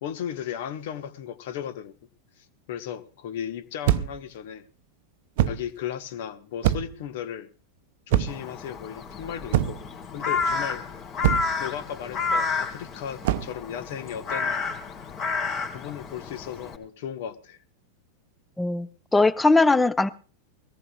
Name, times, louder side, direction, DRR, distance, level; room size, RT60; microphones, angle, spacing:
voice 1, 0.0-1.9 2.4-4.6 5.4-7.5 8.1-9.8 10.1-10.8 11.6-14.6 15.7-17.6, left 9 dB, 55° left, 1.4 m, -35 dB
sound 1, 3.8-4.3 5.4-5.7 6.6-7.0 8.1-8.5 9.5-9.9 11.2-11.6 13.2-13.6, right 12 dB, 50° right, 0.7 m, -24 dB
Crow, 8.3-16.8, left 4 dB, 30° left, 2.6 m, -30 dB
voice 2, 18.6-20.1, left 3 dB, 10° left, 0.9 m, -20 dB
21.5 x 18.0 x 2.4 m
figure-of-eight pair, 90°, 0 cm